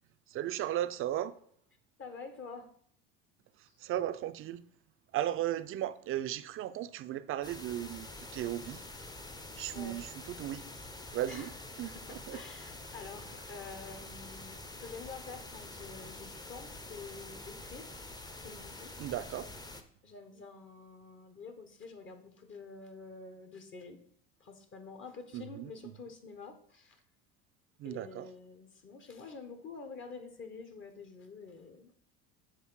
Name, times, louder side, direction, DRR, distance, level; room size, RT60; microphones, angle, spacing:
voice 1, 0.3-1.3 3.8-4.6 5.1-8.8 9.6-10.6 11.1-11.5 11.8-12.4 19.0-19.5 25.3-25.7 27.8-28.3, right 12 dB, 45° right, 0.5 m, -36 dB
voice 2, 2.0-2.7 3.7-3.8 9.7-10.0 11.3-11.6 11.9-18.0 18.4-19.1 20.0-24.0 24.4-27.0 27.8-32.0, left 4 dB, 40° left, 1.1 m, -48 dB
sound 1, 7.4-19.8, left 2 dB, 15° left, 0.7 m, -47 dB
7.4 x 3.2 x 4.6 m
supercardioid pair, 90°, 29 cm